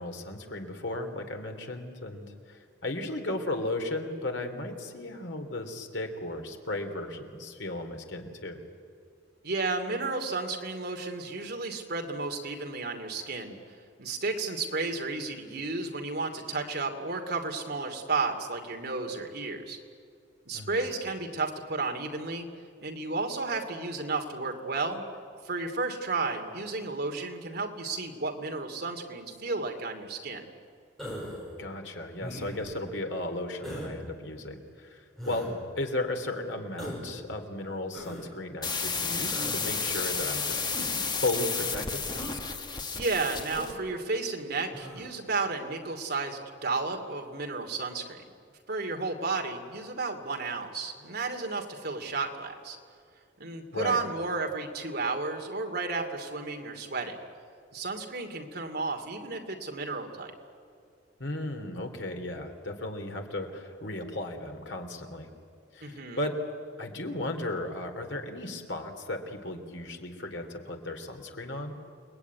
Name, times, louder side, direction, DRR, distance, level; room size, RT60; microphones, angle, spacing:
voice 1, 0.0-8.6 20.5-20.8 31.6-40.9 41.2-42.0 53.7-54.0 61.2-65.3 65.7-66.4 66.8-71.7, left 2 dB, 70° left, 4 dB, 3.0 m, -35 dB
voice 2, 9.4-13.6 14.0-19.8 20.5-22.5 22.8-25.0 25.4-30.4 43.0-48.2 48.7-52.8 53.4-57.2 57.7-60.3 65.8-66.2, right 3 dB, 55° right, 3 dB, 2.7 m, -32 dB
Human voice, 31.0-31.5 32.2-32.7 33.6-33.9 35.2-35.5 36.8-37.1 37.9-38.2 39.3-39.7 40.7-41.1 42.1-42.4 43.5-43.8 44.7-45.1, equal, ahead, 7.5 m, -39 dB
sound 1, 38.6-43.8, left 5 dB, 25° left, 1.5 m, -32 dB
29.0 x 20.0 x 9.5 m, 2.2 s
head